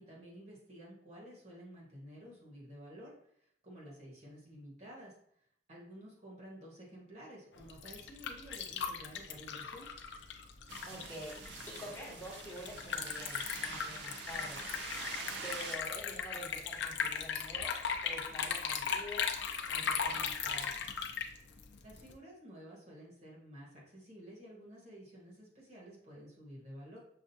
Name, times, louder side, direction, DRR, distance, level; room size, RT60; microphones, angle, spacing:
voice 1, 0.0-3.1 3.4-5.1 5.7-9.9 21.8-27.0, equal, 40° right, -3 dB, 1.4 m, -52 dB
Liquid, 7.6-22.1, left 6 dB, 90° left, 0.5 m, -38 dB
sound 1, 10.7-15.8, right 4 dB, 75° right, 0.6 m, -45 dB
voice 2, 10.8-11.4 11.7-14.6 15.4-19.3 19.7-20.7, equal, 20° left, -4 dB, 1.1 m, -47 dB
6.1 x 2.4 x 2.7 m, 0.68 s
head